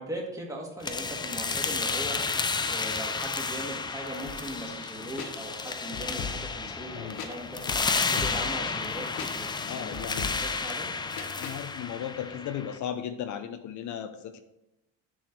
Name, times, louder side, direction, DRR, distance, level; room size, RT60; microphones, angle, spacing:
voice 1, 0.0-2.2 2.7-6.3 6.6-7.6 8.1-10.9, right 1 dB, 10° right, -1 dB, 1.9 m, -39 dB
sound 1, 0.8-12.8, left 4 dB, 15° left, 0.4 m, -32 dB
sound 2, 4.3-11.6, left 6 dB, 90° left, 1.3 m, -41 dB
voice 2, 6.9-7.2 9.7-10.4 11.3-14.4, left 9 dB, 55° left, 8 dB, 0.7 m, -36 dB
7.7 x 4.7 x 6.0 m, 0.90 s
cardioid pair, 135°, 35 cm